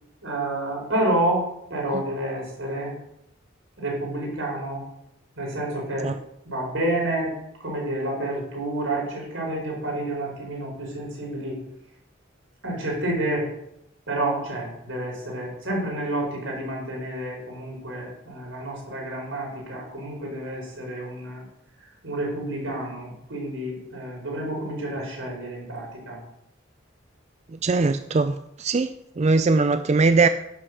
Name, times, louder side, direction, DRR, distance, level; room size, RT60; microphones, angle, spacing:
voice 1, 0.2-2.9 3.8-4.8 5.4-6.1 6.4-7.3 7.6-11.6 12.6-13.5 14.1-21.4 22.0-26.2, right 1 dB, 80° right, -2 dB, 5.1 m, -29 dB
voice 2, 27.6-28.9 29.2-30.3, right 3 dB, 35° right, 10 dB, 0.4 m, -20 dB
11.0 x 6.6 x 6.2 m, 0.80 s
head